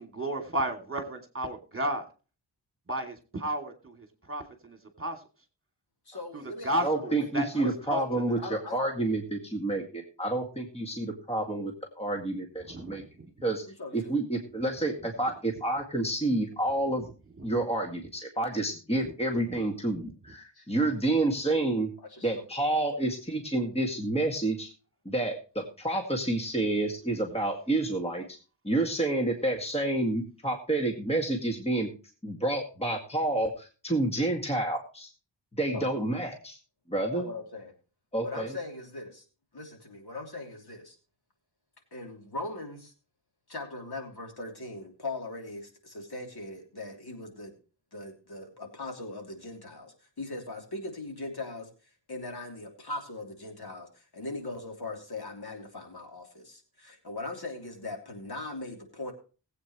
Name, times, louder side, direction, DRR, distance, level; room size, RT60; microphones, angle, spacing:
voice 1, 0.0-2.0 2.9-5.2 6.3-8.0 8.3-8.4 12.6-13.1 17.4-17.5 19.0-19.1 19.5-19.6 20.0-20.1, right 1 dB, 30° right, 4 dB, 2.7 m, -34 dB
voice 2, 6.1-7.8 8.4-8.8 13.7-14.2 20.5-20.7 22.1-22.4 35.7-35.9 37.0-37.7 38.2-39.2 39.5-41.0 41.9-42.9 43.5-47.5 47.9-51.7 52.1-59.1, left 2 dB, 60° left, 2 dB, 3.2 m, -40 dB
voice 3, 6.8-13.0 13.4-13.6 13.9-17.1 17.4-21.9 22.2-24.7 25.1-28.2 28.6-31.9 32.2-35.1 35.6-36.6 36.9-37.3 38.1-38.6, right 2 dB, 15° left, 2 dB, 2.0 m, -29 dB
20.0 x 8.5 x 3.1 m, 0.35 s
wide cardioid pair, 105°, 43 cm